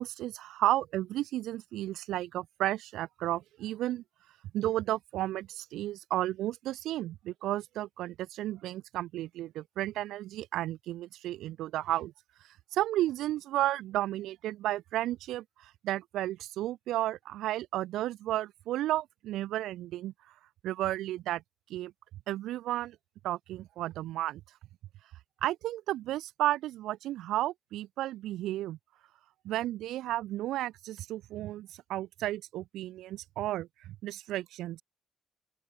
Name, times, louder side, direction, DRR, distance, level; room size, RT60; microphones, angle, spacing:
voice 1, 0.0-4.0 4.5-12.1 12.7-20.1 20.6-21.4 21.7-21.9 22.3-23.0 23.2-24.4 25.4-28.8 29.4-34.8, right 14 dB, 85° right, 1.4 m, -33 dB
open air
cardioid pair, 90°, 0 cm